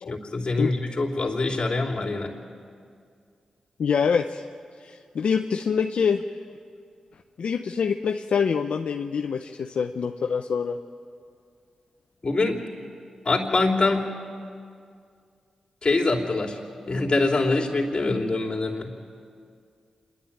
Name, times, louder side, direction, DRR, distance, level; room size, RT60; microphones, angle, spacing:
voice 1, 0.1-2.4 12.2-12.6 13.2-14.1 15.8-16.6 16.9-18.9, left 3 dB, 50° left, 0 dB, 3.2 m, -24 dB
voice 2, 3.8-4.4 4.8-6.3 7.4-10.8, left 6 dB, 75° left, 6 dB, 0.6 m, -25 dB
27.0 x 11.5 x 8.8 m, 2.3 s
cardioid pair, 50°, 2 cm